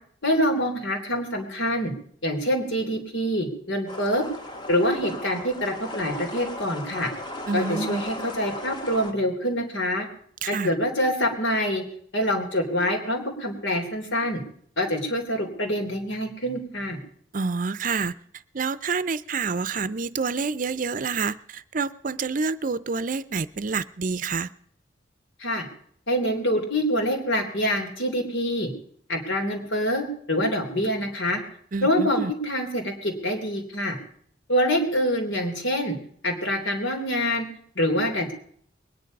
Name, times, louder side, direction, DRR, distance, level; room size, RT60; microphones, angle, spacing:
voice 1, 0.2-1.9 2.2-4.3 4.7-7.1 7.5-10.1 10.5-11.8 12.1-14.4 14.8-17.0 25.4-25.6 26.1-28.7 29.1-31.4 31.8-34.0 34.5-35.9 36.2-37.5 37.7-38.3, equal, 75° left, 3 dB, 3.4 m, -25 dB
sound 1, 3.9-9.1, left 1 dB, 25° left, 1.9 m, -36 dB
voice 2, 7.5-8.0 10.4-10.7 17.3-18.1 18.5-24.5 31.7-32.3, right 4 dB, 45° right, 16 dB, 0.6 m, -28 dB
21.5 x 10.5 x 5.3 m, 0.62 s
head